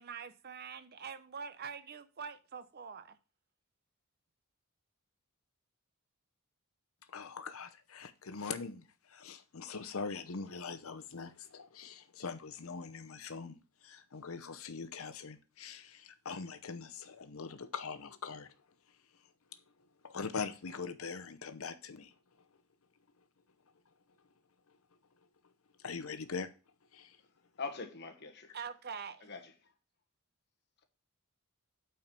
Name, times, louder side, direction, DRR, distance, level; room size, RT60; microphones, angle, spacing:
voice 1, 0.0-3.2 28.5-29.3, right 6 dB, 45° right, 0.7 m, -44 dB
voice 2, 7.1-18.5 20.0-22.5 25.8-26.5 26.9-27.2, left 5 dB, 65° left, 0.8 m, -42 dB
voice 3, 27.6-28.5 29.2-29.5, left 4 dB, 50° left, 1.3 m, -42 dB
8.7 x 4.5 x 5.3 m
head